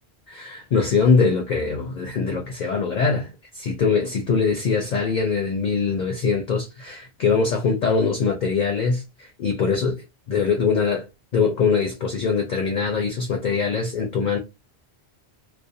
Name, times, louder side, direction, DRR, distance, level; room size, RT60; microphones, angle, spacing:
voice 1, 0.3-10.0 10.3-11.1 11.3-14.4, left 5 dB, 55° left, 0.5 m, -22 dB
2.3 x 2.1 x 2.6 m
omnidirectional pair, 1.1 m